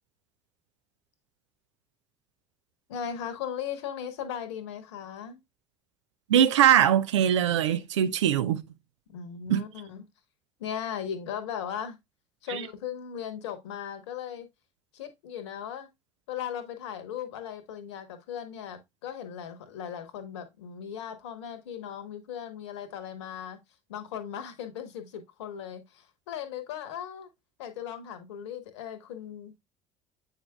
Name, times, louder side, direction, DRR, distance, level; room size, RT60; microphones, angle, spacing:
voice 1, 2.9-5.4 9.1-10.0 10.6-12.0 12.4-14.5 14.9-15.9 16.3-23.6 23.9-27.3 27.6-29.5, left 8 dB, 70° left, 1.2 m, -37 dB
voice 2, 6.3-8.6 9.5-9.6 12.5-12.6, right 10 dB, 75° right, 0.7 m, -22 dB
8.2 x 4.9 x 2.3 m
figure-of-eight pair, 60°, 15 cm